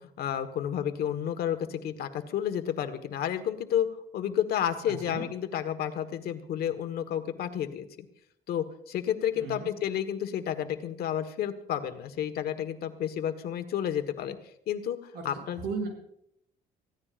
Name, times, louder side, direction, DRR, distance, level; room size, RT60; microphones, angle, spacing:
voice 1, 0.0-8.1 8.5-14.4 14.7-15.6, left 10 dB, 65° left, 9 dB, 1.4 m, -31 dB
voice 2, 4.9-5.2 9.3-9.7 15.1-15.9, right 4 dB, 80° right, 2 dB, 6.9 m, -36 dB
25.5 x 15.5 x 2.5 m, 0.74 s
cardioid pair, 110°, 17 cm